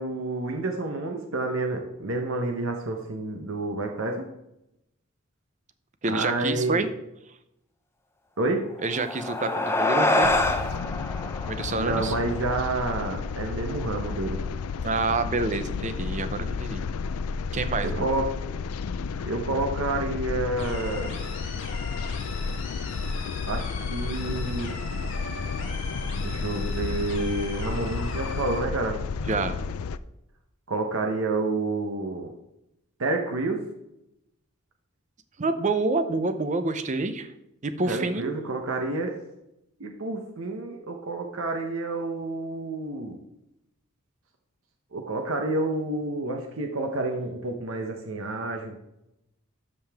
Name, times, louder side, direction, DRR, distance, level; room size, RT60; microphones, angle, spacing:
voice 1, 0.0-4.3 6.1-6.9 8.4-8.6 11.8-14.4 17.8-18.3 19.2-21.1 23.5-24.8 26.2-29.0 30.7-32.3 33.0-33.6 37.9-39.2 39.8-43.2 44.9-48.8, right 2 dB, 65° right, 3 dB, 0.9 m, -29 dB
voice 2, 6.0-6.9 8.8-10.3 11.5-12.1 14.8-16.9 17.5-18.0 29.3-29.6 35.4-37.3 37.6-38.3, right 3 dB, 35° right, 10 dB, 0.6 m, -27 dB
sound 1, 8.8-13.6, left 2 dB, 10° left, 0.7 m, -27 dB
sound 2, 10.2-30.0, left 5 dB, 85° left, 0.4 m, -32 dB
sound 3, 20.6-28.6, left 4 dB, 60° left, 2.5 m, -40 dB
13.0 x 5.4 x 3.5 m, 0.86 s
head